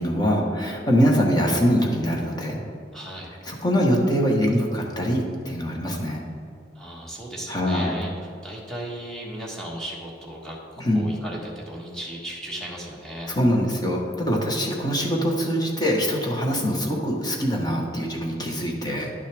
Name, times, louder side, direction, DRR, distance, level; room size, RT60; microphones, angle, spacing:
voice 1, 0.0-2.6 3.5-6.2 7.5-8.0 10.8-11.1 13.3-19.1, equal, 25° left, -1 dB, 1.2 m, -23 dB
voice 2, 2.9-3.3 6.7-13.3, right 1 dB, 5° left, -4 dB, 1.4 m, -36 dB
11.0 x 6.5 x 3.4 m, 2.5 s
head